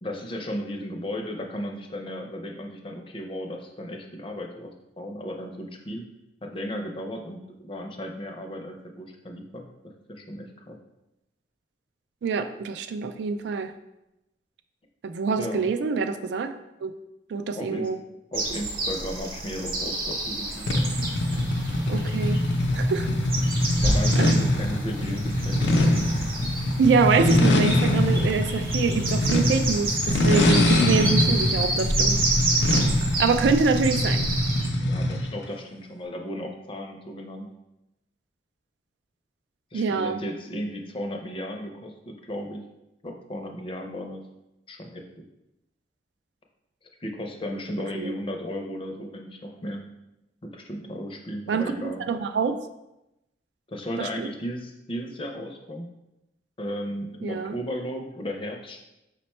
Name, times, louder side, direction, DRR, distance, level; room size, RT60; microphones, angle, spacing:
voice 1, 0.0-4.7 5.0-6.0 6.4-9.7 10.1-10.8 15.4-15.7 17.6-17.9 18.3-20.7 23.7-25.7 34.8-37.5 39.7-42.6 43.0-44.2 44.7-45.2 47.0-49.8 50.4-52.0 53.7-55.9 56.6-58.8, equal, 30° left, 3 dB, 0.5 m, -35 dB
voice 2, 12.2-13.7 15.0-16.5 16.8-16.9 17.3-18.0 21.9-22.4 22.7-23.1 24.2-24.4 26.8-32.2 33.2-34.2 39.7-40.2 47.9-48.1 51.5-51.7 52.1-52.6 54.0-54.3 57.2-57.6, right 5 dB, 80° right, 9 dB, 0.3 m, -25 dB
sound 1, 18.3-34.7, right 2 dB, 55° right, 0.8 m, -30 dB
sound 2, 20.7-35.3, left 1 dB, 85° left, 0.5 m, -23 dB
5.0 x 2.2 x 4.1 m, 0.91 s
head